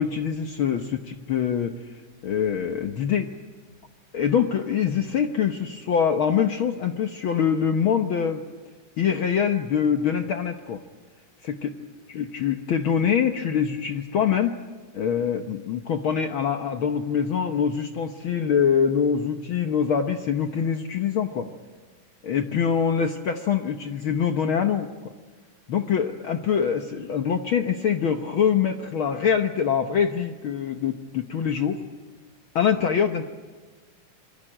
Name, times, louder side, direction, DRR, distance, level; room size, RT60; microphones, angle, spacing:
voice 1, 0.0-1.7 2.2-3.3 4.1-8.4 9.0-10.8 11.4-11.7 12.1-14.6 14.9-21.5 22.2-25.1 25.7-31.8 32.5-33.3, left 7 dB, 80° left, 6 dB, 1.1 m, -24 dB
27.0 x 23.0 x 8.9 m, 1.3 s
omnidirectional pair, 3.7 m